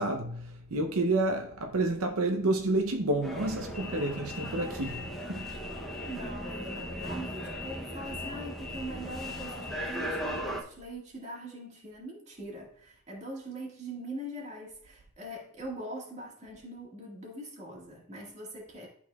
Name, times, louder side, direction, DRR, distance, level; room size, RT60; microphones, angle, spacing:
voice 1, 0.0-5.6, right 2 dB, 85° right, 0.7 m, -30 dB
sound 1, 3.2-10.6, equal, ahead, 0.7 m, -37 dB
voice 2, 6.1-18.9, right 1 dB, 30° right, 1.8 m, -42 dB
11.0 x 4.1 x 2.3 m
head